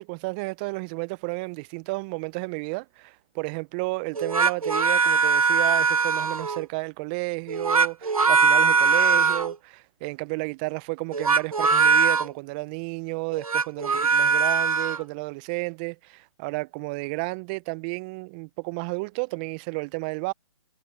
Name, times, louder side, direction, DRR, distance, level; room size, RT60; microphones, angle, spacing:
voice 1, 0.0-20.3, right 29 dB, 15° right, 0.4 m, -32 dB
sound 1, 4.1-6.6 7.5-9.5 11.1-12.3 13.3-15.0, right 5 dB, 80° right, 1.4 m, -21 dB
figure-of-eight pair, 140°, 18 cm